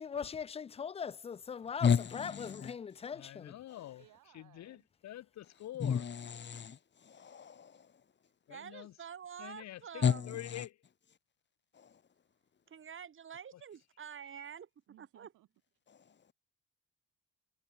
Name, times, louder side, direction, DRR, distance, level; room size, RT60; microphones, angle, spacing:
voice 1, 0.0-3.5, left 6 dB, 20° left, 0.3 m, -40 dB
voice 2, 1.8-2.7 5.8-7.9 10.0-10.6 11.7-11.9, left 7 dB, 35° left, 1.2 m, -32 dB
voice 3, 3.2-4.0 4.3-6.0 8.5-8.9 9.4-10.8, left 13 dB, 65° left, 0.7 m, -46 dB
voice 4, 4.0-4.9 14.9-15.5, right 15 dB, 85° right, 2.8 m, -63 dB
voice 5, 8.5-10.4 12.7-14.7 15.0-15.3, right 8 dB, 45° right, 1.2 m, -48 dB
cardioid pair, 90°, 30 cm